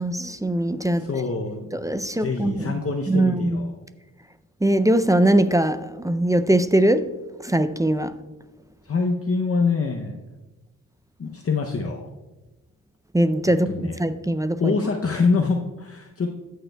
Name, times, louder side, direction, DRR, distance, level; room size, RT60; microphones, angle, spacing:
voice 1, 0.0-1.0 1.7-2.7 3.1-3.6 4.6-7.1 7.4-8.1 13.1-14.7, right 1 dB, 10° right, 0.4 m, -21 dB
voice 2, 1.0-1.7 2.2-3.7 8.8-10.2 11.2-12.1 13.5-14.0 14.6-16.3, left 4 dB, 40° left, 0.7 m, -25 dB
14.0 x 6.5 x 2.3 m
cardioid pair, 70°, 36 cm